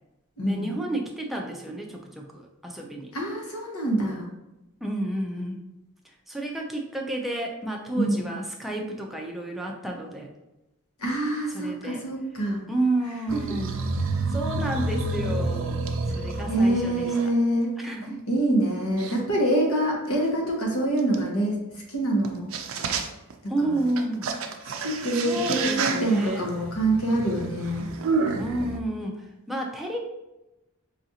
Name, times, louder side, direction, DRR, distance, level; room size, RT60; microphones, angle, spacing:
voice 1, 0.4-3.1 4.8-5.6 6.3-10.3 11.5-12.0 12.7-13.8 14.3-17.3 17.8-18.2 23.5-24.3 25.1-26.4 28.4-30.0, right 1 dB, ahead, 0 dB, 0.4 m, -31 dB
voice 2, 3.1-4.3 7.9-8.2 11.0-12.7 13.3-13.4 16.5-17.8 18.3-21.6 21.9-22.5 23.4-23.7 24.8-27.9, right 1 dB, 80° left, -1 dB, 1.1 m, -25 dB
sound 1, 13.3-17.3 18.0-18.1 19.0-19.1 21.1-21.2 22.2-22.3 22.5-23.3 23.8-28.8, right 3 dB, 65° right, 0.4 m, -29 dB
4.9 x 2.5 x 2.8 m, 0.96 s
head